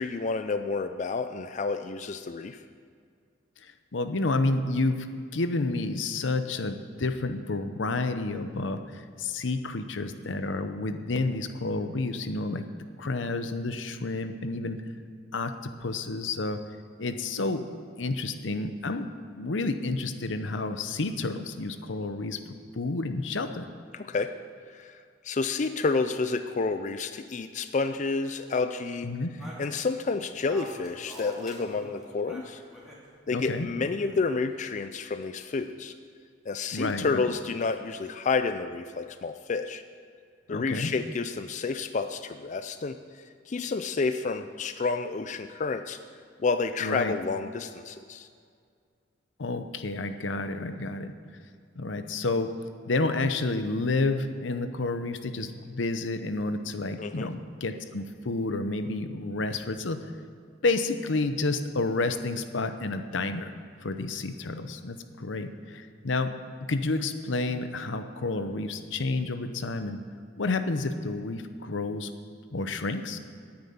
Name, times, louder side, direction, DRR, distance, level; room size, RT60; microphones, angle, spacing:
voice 1, 0.0-2.6 23.9-24.3 24.7-29.1 29.6-32.6 33.3-35.9 36.5-39.8 40.5-46.0 46.4-48.3 57.0-57.3, left 4 dB, 40° left, 9 dB, 0.4 m, -30 dB
voice 2, 3.6-5.1 5.3-12.7 13.0-14.8 15.3-16.6 17.0-17.7 18.0-22.4 22.7-23.7 29.0-29.3 33.3-33.7 36.7-37.2 40.5-40.9 46.8-47.1 49.4-51.1 51.8-52.5 52.9-60.1 60.6-63.5 63.8-70.0 70.4-72.1 72.5-73.2, left 3 dB, 85° left, 9 dB, 0.8 m, -30 dB
sound 1, 29.4-33.0 33.8-34.5, equal, 5° right, 2.6 m, -46 dB
9.7 x 8.8 x 8.8 m, 2.2 s
head